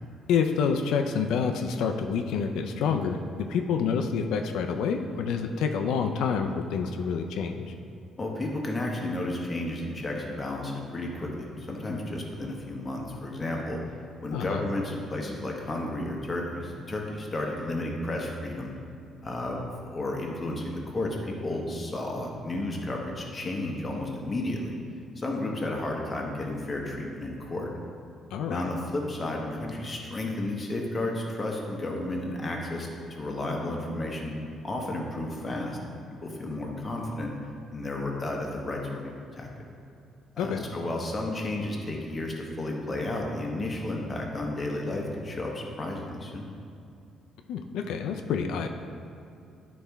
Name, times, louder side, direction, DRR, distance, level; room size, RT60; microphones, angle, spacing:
voice 1, 0.3-3.2 3.5-7.6 14.3-14.6 28.3-28.7 40.4-40.6 47.5-48.7, left 6 dB, 85° left, 5 dB, 0.4 m, -28 dB
voice 2, 8.2-13.8 14.2-18.8 19.2-24.7 25.2-27.7 28.5-34.3 34.6-37.3 37.7-39.5 40.4-46.5, left 1 dB, 20° left, 0 dB, 0.8 m, -32 dB
11.0 x 4.2 x 3.4 m, 2.6 s
cardioid pair, 180°, 0 cm